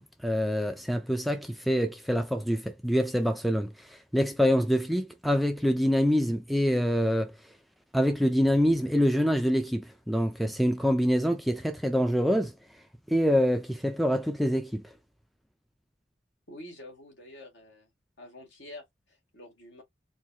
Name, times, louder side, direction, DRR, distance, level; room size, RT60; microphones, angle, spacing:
voice 1, 0.2-7.3 7.9-12.5 13.1-14.8, equal, ahead, 0.3 m, -25 dB
voice 2, 16.5-17.9 18.2-19.8, left 1 dB, 70° left, 2.0 m, -47 dB
4.4 x 2.2 x 2.7 m
head